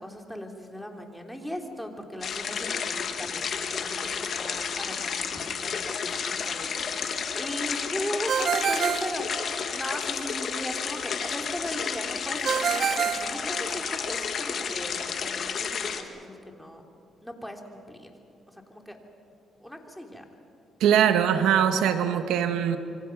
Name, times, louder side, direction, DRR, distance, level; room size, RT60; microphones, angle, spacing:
voice 1, 0.0-14.9 15.2-16.8 17.2-18.1 18.5-19.0 19.6-20.2, equal, 5° left, 2 dB, 3.1 m, -38 dB
sound 1, 2.2-16.0, left 6 dB, 55° left, 1.9 m, -31 dB
Ringtone, 8.3-10.0 12.5-14.1, right 8 dB, 60° right, 0.7 m, -28 dB
voice 2, 20.8-22.8, right 9 dB, 90° right, 8 dB, 1.3 m, -22 dB
26.0 x 24.0 x 5.9 m, 2.5 s
cardioid pair, 90°, 0 cm